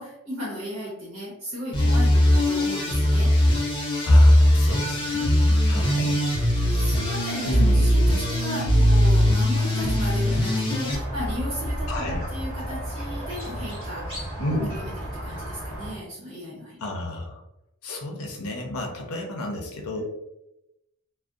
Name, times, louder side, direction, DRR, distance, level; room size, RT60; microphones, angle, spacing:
voice 1, 0.0-3.4 5.5-5.9 6.3-6.4 6.7-16.8 19.9-20.0, equal, 70° right, -7 dB, 1.0 m, -35 dB
sound 1, 1.7-11.0, equal, 25° left, 0.5 m, -20 dB
voice 2, 4.0-6.2 7.5-7.9 11.9-12.2 14.4-14.7 16.8-17.4 17.8-20.0, left 1 dB, 85° left, 1 dB, 0.6 m, -32 dB
Squeak, 10.9-15.9, equal, 25° right, 1.2 m, -32 dB
2.5 x 2.1 x 2.3 m, 0.91 s
head